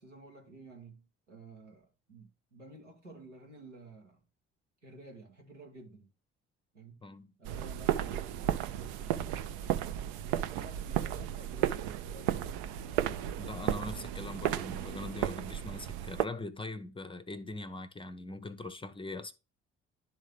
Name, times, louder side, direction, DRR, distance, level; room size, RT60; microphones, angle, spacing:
voice 1, 0.0-4.2 4.8-6.1 6.7-7.0 7.4-9.2 9.6-12.8, right 2 dB, 90° right, 1.1 m, -52 dB
voice 2, 7.0-7.3 13.4-19.3, left 2 dB, 15° left, 0.6 m, -42 dB
sound 1, 7.4-16.2, right 12 dB, 65° right, 0.5 m, -34 dB
10.5 x 3.7 x 3.2 m
figure-of-eight pair, 45°, 35 cm